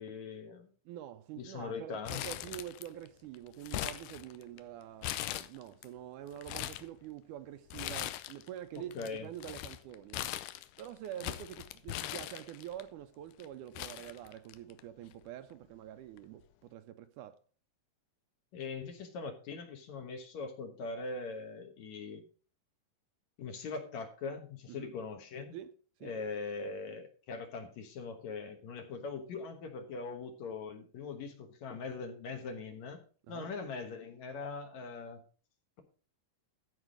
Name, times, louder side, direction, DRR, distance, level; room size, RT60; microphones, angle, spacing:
voice 1, 0.0-0.7 1.4-2.3 8.9-9.3 18.5-22.2 23.4-25.5 26.0-33.0 33.3-35.2, left 4 dB, 65° left, 2.3 m, -41 dB
voice 2, 0.9-10.3 10.8-17.4 24.7-24.9 25.5-25.7 26.0-26.1 33.2-33.5, right 12 dB, 80° right, 2.0 m, -46 dB
Crumpling crinkling, 2.1-3.1 3.3-4.6 5.0-5.9 6.3-6.9 7.7-8.5 8.8-12.8 13.4-13.5 13.8-14.8 15.1-15.2 16.2-16.4, left 14 dB, 80° left, 2.1 m, -40 dB
14.5 x 4.9 x 5.0 m
omnidirectional pair, 3.9 m